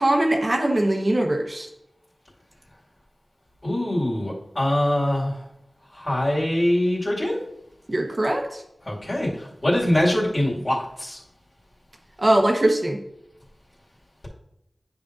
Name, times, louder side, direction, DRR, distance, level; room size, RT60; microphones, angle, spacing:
voice 1, 0.0-1.7 7.9-8.6 12.2-13.0, right 1 dB, 45° right, 3 dB, 0.9 m, -21 dB
voice 2, 3.6-5.4 5.9-7.4 8.9-11.2, left 1 dB, 45° left, -6 dB, 2.1 m, -23 dB
9.7 x 5.1 x 2.5 m, 0.81 s
wide cardioid pair, 60°, 0 cm